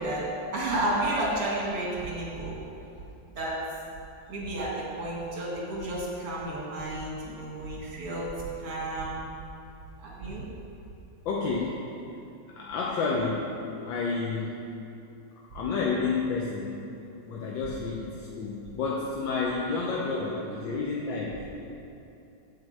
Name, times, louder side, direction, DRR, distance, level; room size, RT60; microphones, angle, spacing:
voice 1, 0.0-2.6 3.4-3.7 4.3-9.2 10.0-10.5 13.8-13.9 18.6-18.7 19.6-19.7 20.1-20.8 21.5-21.6, right 1 dB, 85° right, -4 dB, 2.7 m, -32 dB
voice 2, 11.2-11.8 12.5-14.7 15.5-16.8 17.3-21.4, left 4 dB, 65° left, -4 dB, 1.5 m, -30 dB
9.7 x 4.7 x 7.7 m, 2.8 s
omnidirectional pair, 2.4 m